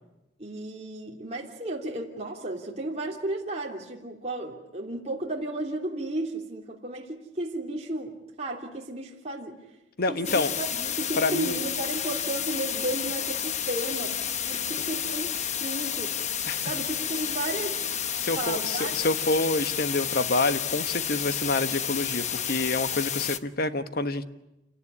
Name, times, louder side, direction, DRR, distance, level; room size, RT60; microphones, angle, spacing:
voice 1, 0.4-9.6 10.1-14.2 14.4-16.2 16.6-17.9 18.3-18.9, right 1 dB, 35° right, -2 dB, 3.1 m, -34 dB
voice 2, 10.0-10.5 11.2-11.6 16.5-16.7 18.2-24.2, left 2 dB, 55° left, 10 dB, 1.3 m, -27 dB
sound 1, 10.2-23.4, left 8 dB, 40° left, 1.0 m, -31 dB
28.0 x 18.5 x 9.8 m, 0.93 s
head